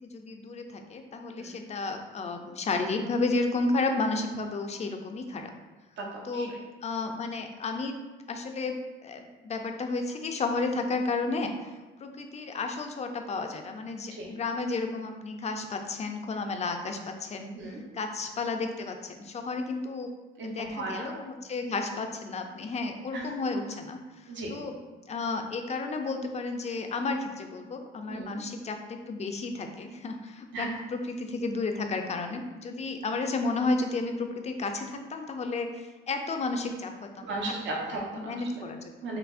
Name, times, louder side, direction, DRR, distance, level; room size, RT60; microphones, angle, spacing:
voice 1, 0.0-5.5 6.2-6.5 6.8-8.0 8.3-11.5 12.0-17.5 17.9-20.1 20.4-24.8 25.1-37.3 38.1-38.9, left 3 dB, 35° left, 5 dB, 0.4 m, -32 dB
voice 2, 1.3-1.6 6.0-6.6 14.1-14.3 17.5-17.8 20.4-21.1 23.1-23.2 24.3-24.6 28.1-28.4 30.5-30.7 37.2-38.4 39.0-39.2, right 2 dB, 65° right, -2 dB, 0.9 m, -36 dB
5.7 x 2.0 x 2.5 m, 1.2 s
cardioid pair, 90°, 20 cm